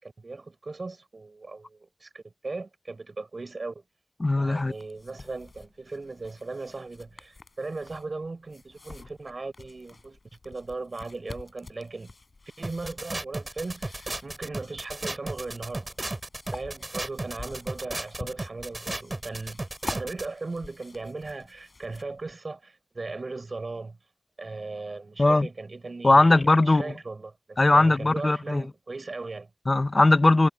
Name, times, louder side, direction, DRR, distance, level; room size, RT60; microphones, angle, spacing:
voice 1, 0.0-3.8 4.4-10.2 10.4-12.1 12.6-15.9 16.5-24.0 24.4-26.3 26.7-29.5, right 3 dB, 90° right, 6.7 m, -38 dB
voice 2, 4.2-4.7 25.2-25.5 26.0-26.9 27.6-28.6 29.7-30.5, left 2 dB, 60° left, 0.7 m, -19 dB
sound 1, 4.6-22.3, left 3 dB, 90° left, 5.8 m, -47 dB
sound 2, 12.6-20.3, right 2 dB, 50° right, 5.3 m, -34 dB
wide cardioid pair, 40°, 0 cm